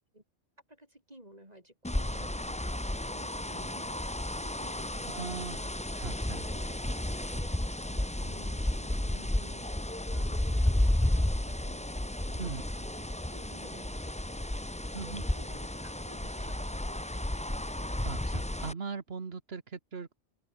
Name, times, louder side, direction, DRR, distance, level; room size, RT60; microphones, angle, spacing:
voice 1, 0.7-5.2 5.5-5.9 6.3-6.8 7.2-11.9 12.2-14.1 15.0-17.0, right 1 dB, 30° right, 7.1 m, -54 dB
sound 1, 1.8-18.7, left 1 dB, 5° left, 0.8 m, -32 dB
voice 2, 5.1-5.6 6.0-6.4 12.4-12.6 14.9-15.2 18.0-20.1, right 5 dB, 55° right, 1.9 m, -39 dB
open air
omnidirectional pair, 1.3 m